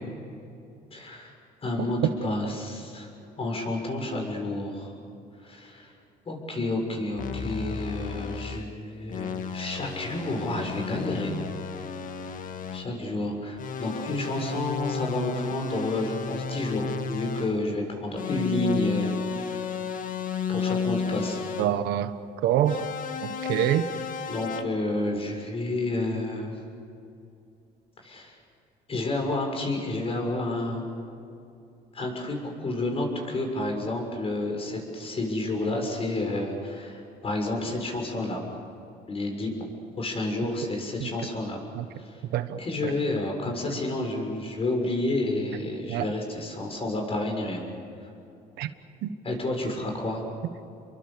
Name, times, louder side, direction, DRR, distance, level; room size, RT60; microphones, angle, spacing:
voice 1, 0.9-1.3 1.6-3.1 3.4-4.9 5.4-5.9 6.3-11.3 12.7-19.7 20.5-21.4 24.3-26.5 28.0-28.3 28.9-30.8 31.9-38.4 39.1-39.6 40.0-41.6 42.0-42.2 42.6-47.6 49.2-50.2, left 2 dB, 35° left, 2 dB, 6.9 m, -30 dB
sound 1, 7.2-8.7 9.1-12.9 13.6-17.6 18.1-21.8 22.6-24.6, left 6 dB, 55° left, 1.7 m, -32 dB
voice 2, 21.6-22.1 22.4-22.8 23.2-23.9 41.0-41.1 41.7-41.8 42.3-42.9 45.9-46.1 48.6-48.7 49.0-49.1, right 11 dB, 80° right, 11 dB, 1.3 m, -26 dB
30.0 x 23.0 x 6.8 m, 2.7 s
cardioid pair, 110°, 17 cm